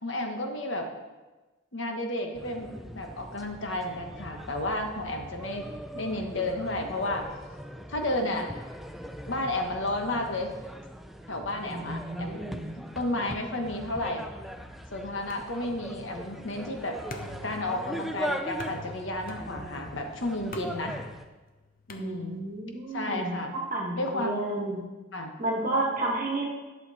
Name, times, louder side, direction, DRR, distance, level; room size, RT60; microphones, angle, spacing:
voice 1, 0.0-0.9 1.7-5.7 5.9-7.3 7.9-8.5 9.3-10.5 11.3-12.4 12.9-14.3 14.9-17.0 17.4-21.0 21.9-22.4 22.9-23.5 23.9-24.4 25.1-25.3, left 1 dB, 60° left, 3 dB, 1.3 m, -32 dB
sound 1, 2.3-21.2, right 1 dB, ahead, 0.4 m, -40 dB
voice 2, 11.7-12.7 22.0-23.3 23.7-24.8 25.4-26.5, right 2 dB, 40° right, -2 dB, 1.6 m, -31 dB
sound 2, 15.3-22.7, left 2 dB, 45° left, 0.8 m, -46 dB
11.0 x 7.0 x 4.2 m, 1.2 s
head